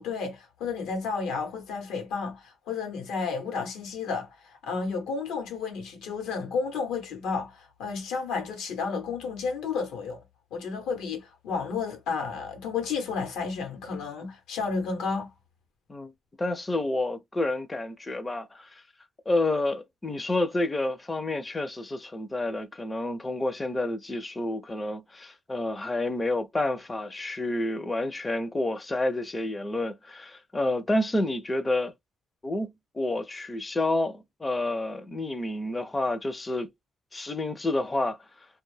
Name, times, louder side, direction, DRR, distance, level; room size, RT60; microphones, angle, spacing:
voice 1, 0.0-10.2 10.5-15.3, left 5 dB, 90° left, 0.9 m, -32 dB
voice 2, 16.4-18.8 19.3-31.9 32.4-36.7 37.1-38.5, left 2 dB, 20° left, 0.5 m, -29 dB
2.3 x 2.1 x 3.2 m
cardioid pair, 90°, 0 cm